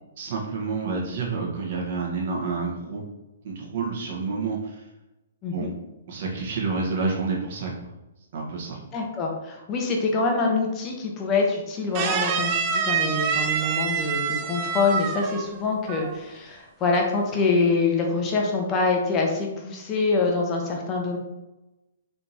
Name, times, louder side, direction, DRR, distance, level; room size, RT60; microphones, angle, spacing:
voice 1, 0.2-3.0 3.4-4.8 5.5-5.7 6.1-7.9 8.3-8.8, right 4 dB, 55° right, -2 dB, 1.2 m, -29 dB
voice 2, 8.9-21.2, left 3 dB, 25° left, 0 dB, 0.8 m, -25 dB
sound 1, 11.9-15.6 15.9-16.2, right 6 dB, 30° right, 0.4 m, -26 dB
3.5 x 2.9 x 4.0 m, 1.0 s
hypercardioid pair, 150°, 0 cm